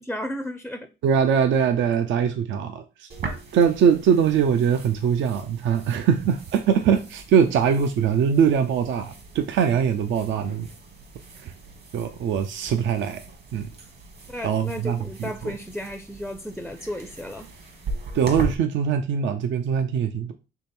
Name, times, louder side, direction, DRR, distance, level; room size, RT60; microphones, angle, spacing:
voice 1, 0.0-0.9 14.3-17.5, equal, ahead, 0.4 m, -33 dB
voice 2, 1.0-3.1 3.5-10.7 11.4-11.5 11.9-13.2 13.5-13.7 14.4-15.5 18.1-20.3, right 7 dB, 70° right, 0.5 m, -22 dB
sound 1, 3.1-18.5, right 3 dB, 55° right, 1.4 m, -39 dB
3.7 x 3.3 x 4.3 m
cardioid pair, 90°, 20 cm